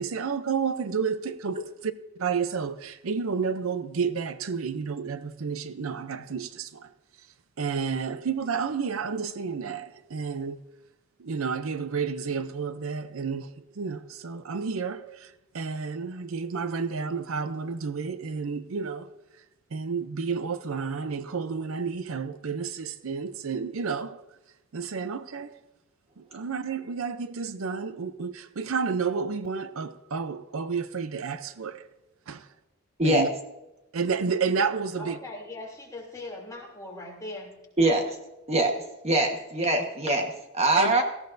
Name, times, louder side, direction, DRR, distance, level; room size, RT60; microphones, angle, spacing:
voice 1, 0.0-1.9 2.2-6.9 7.6-10.6 11.2-13.5 13.8-19.1 19.7-24.2 24.7-25.5 26.2-31.9 32.3-32.5 33.0-33.3 33.9-35.2 40.8-41.0, right 5 dB, 75° right, 0.6 m, -31 dB
voice 2, 35.0-37.6, left 2 dB, 15° left, 2.9 m, -40 dB
voice 3, 37.8-38.2 38.5-38.7 39.0-41.0, right 2 dB, 30° right, 1.3 m, -23 dB
18.0 x 14.5 x 2.6 m
head